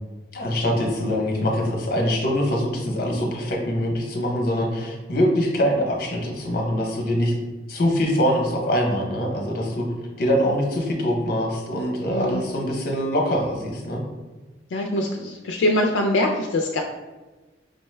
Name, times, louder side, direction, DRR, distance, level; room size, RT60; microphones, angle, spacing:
voice 1, 0.3-7.4 7.7-9.9 10.2-14.0, equal, 55° left, 1 dB, 0.7 m, -23 dB
voice 2, 12.1-12.4 14.7-16.8, left 1 dB, 80° left, 2 dB, 0.3 m, -23 dB
5.2 x 2.1 x 3.2 m, 1.2 s
head